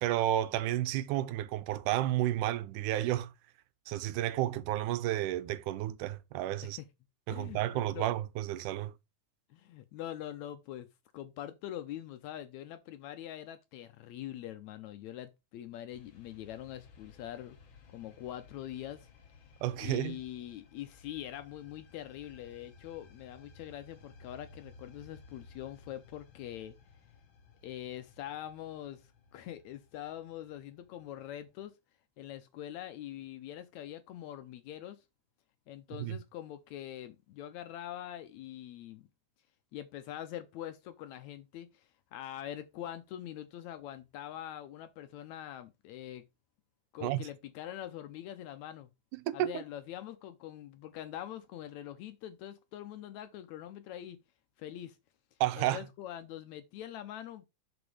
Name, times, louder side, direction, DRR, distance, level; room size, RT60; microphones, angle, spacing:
voice 1, 0.0-3.3 3.9-6.8 7.3-8.9 19.6-20.2 36.0-36.2 47.0-47.2 49.1-49.6 55.4-55.8, right 13 dB, 80° right, 2.1 m, -31 dB
voice 2, 7.3-8.1 9.5-10.9 11.1-17.6 17.9-19.1 19.8-26.8 27.6-31.8 32.2-35.0 35.7-39.0 39.7-46.2 46.9-48.9 49.3-54.2 54.6-55.0 55.6-57.5, left 12 dB, 75° left, 1.8 m, -44 dB
sound 1, 15.9-31.6, left 4 dB, 55° left, 1.6 m, -58 dB
7.0 x 4.3 x 4.8 m
omnidirectional pair, 3.7 m